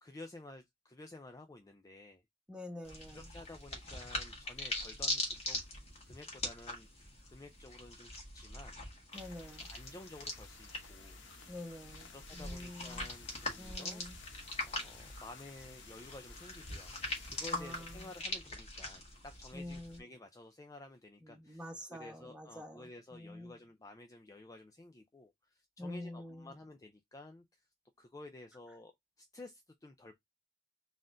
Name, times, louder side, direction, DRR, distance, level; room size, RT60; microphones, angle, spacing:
voice 1, 0.0-2.2 3.1-5.6 6.0-8.8 9.6-11.2 12.1-14.0 14.6-17.0 17.2-27.7 28.0-28.9 29.2-30.1, left 2 dB, 20° left, 0.4 m, -52 dB
voice 2, 2.5-3.3 9.1-9.7 11.5-13.1 13.6-14.2 17.5-18.1 19.5-20.0 21.2-23.6 25.8-26.6, left 1 dB, 5° right, 1.0 m, -47 dB
sound 1, 2.8-20.0, left 2 dB, 35° left, 1.5 m, -42 dB
sound 2, 9.1-18.2, left 4 dB, 65° left, 0.9 m, -55 dB
4.1 x 2.5 x 3.7 m
head